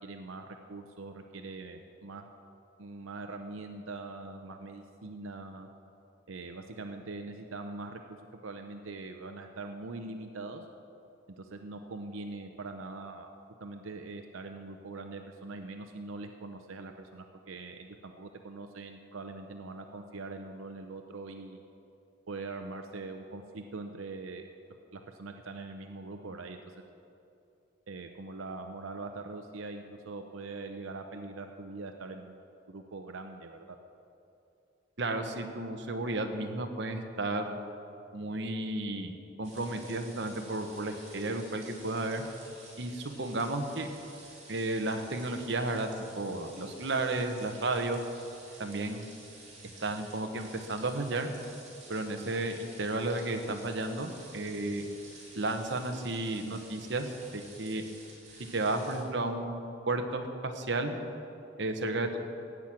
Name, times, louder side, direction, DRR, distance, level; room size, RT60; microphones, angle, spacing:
voice 1, 0.0-2.3 2.8-5.7 6.3-8.2 8.4-10.6 11.4-21.6 22.3-24.5 24.9-26.7 27.9-33.8, right 3 dB, 90° right, 5 dB, 0.7 m, -42 dB
voice 2, 35.0-37.6 38.1-42.2 42.8-43.9 44.5-45.9 46.2-48.0 48.6-49.1 49.8-51.3 51.9-54.9 55.3-57.8 58.5-59.6 59.9-61.0 61.6-62.2, right 2 dB, 60° right, 5 dB, 1.1 m, -33 dB
sound 1, 39.4-59.0, right 2 dB, 35° right, 4.0 m, -52 dB
16.0 x 6.1 x 8.8 m, 2.7 s
head